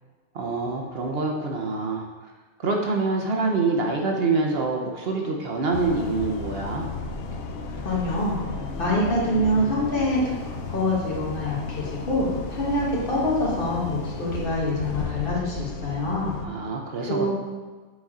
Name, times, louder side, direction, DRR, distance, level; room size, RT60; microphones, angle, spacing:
voice 1, 0.3-2.1 2.6-6.9 16.4-17.3, right 3 dB, 55° right, 1 dB, 0.9 m, -26 dB
sound 1, 5.7-16.5, left 4 dB, 65° left, 0.7 m, -34 dB
voice 2, 7.8-8.4 8.8-10.2 10.7-16.4 17.1-17.3, left 1 dB, 45° left, -5 dB, 1.7 m, -25 dB
6.4 x 4.1 x 3.7 m, 1.4 s
omnidirectional pair, 1.3 m